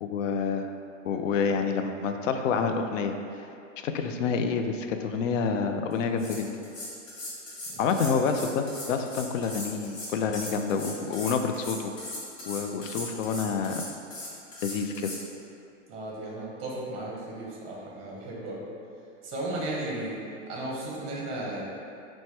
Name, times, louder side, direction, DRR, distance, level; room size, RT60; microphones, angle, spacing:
voice 1, 0.0-0.7 1.0-3.2 3.8-6.5 7.8-11.9 12.5-13.8 14.6-15.1, left 5 dB, 75° left, 6 dB, 0.5 m, -28 dB
sound 1, 5.9-6.0 6.2-15.2, left 1 dB, 45° left, 1.2 m, -39 dB
voice 2, 7.7-8.2 15.9-18.6 19.2-20.2 20.5-21.6, right 1 dB, 15° right, -4 dB, 0.6 m, -35 dB
4.5 x 2.2 x 4.3 m, 2.6 s
supercardioid pair, 155°, 39 cm